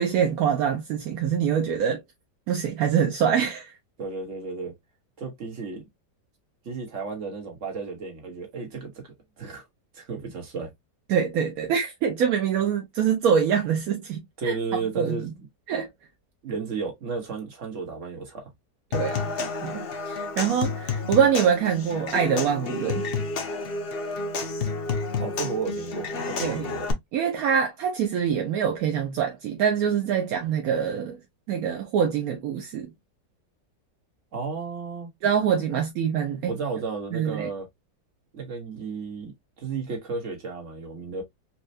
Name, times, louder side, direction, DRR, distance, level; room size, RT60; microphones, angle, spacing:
voice 1, 0.0-2.0 2.5-3.8 11.1-14.6 15.0-15.3 15.7-15.9 18.9-23.0 26.4-26.7 27.1-31.2 31.5-32.9 35.2-36.6 37.1-37.5, right 7 dB, 70° right, 1.0 m, -25 dB
voice 2, 4.0-4.7 5.2-5.9 6.6-9.6 9.9-10.7 14.4-15.5 16.4-18.5 25.2-26.8 34.3-35.1 35.7-35.8 36.5-37.7 38.3-39.3 39.6-41.2, right 4 dB, 45° right, 1.6 m, -33 dB
Human voice / Acoustic guitar / Percussion, 18.9-26.9, left 4 dB, 70° left, 0.5 m, -30 dB
4.3 x 2.3 x 2.6 m
omnidirectional pair, 1.9 m